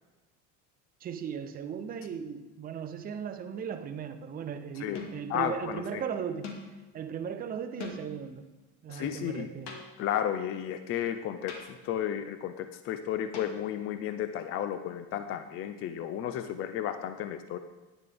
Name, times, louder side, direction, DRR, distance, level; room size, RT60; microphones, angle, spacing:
voice 1, 1.0-6.5 6.9-8.5 8.8-9.7, right 7 dB, 25° right, 8 dB, 0.6 m, -37 dB
sound 1, 3.1-3.5 4.9-5.4 6.4-6.8 7.8-8.3 9.7-10.2 11.5-11.9 13.3-14.0, left 4 dB, 85° left, 1.9 m, -44 dB
voice 2, 4.8-6.0 8.9-9.5 10.0-17.6, left 10 dB, 40° left, 9 dB, 0.5 m, -33 dB
10.5 x 10.5 x 3.4 m, 1.2 s
cardioid pair, 150°, 36 cm